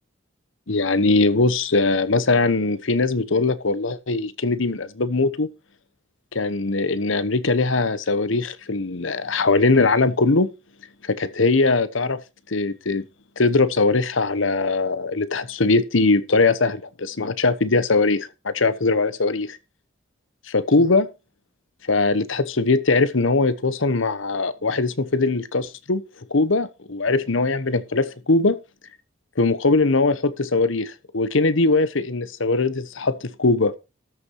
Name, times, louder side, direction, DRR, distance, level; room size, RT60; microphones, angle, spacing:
voice 1, 0.7-5.5 6.3-10.5 11.0-12.2 12.5-13.1 13.4-19.6 20.5-21.1 21.9-26.0 26.3-28.6 29.4-33.8, left 3 dB, 70° left, 1.0 m, -21 dB
13.0 x 6.8 x 4.7 m
head